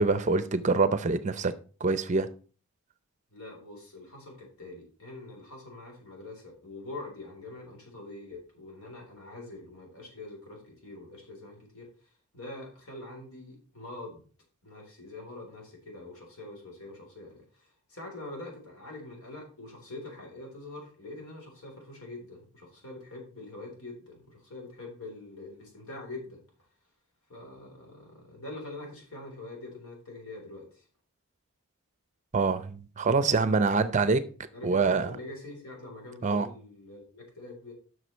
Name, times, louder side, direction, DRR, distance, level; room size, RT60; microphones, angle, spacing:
voice 1, 0.0-1.5 1.8-2.3 32.3-34.2 34.6-35.2 36.2-36.5, right 4 dB, 35° right, 0.5 m, -25 dB
voice 2, 3.3-14.2 14.6-26.4 27.3-30.9 33.7-34.1 34.5-37.7, left 2 dB, 80° left, 3.7 m, -44 dB
8.1 x 6.2 x 4.4 m
head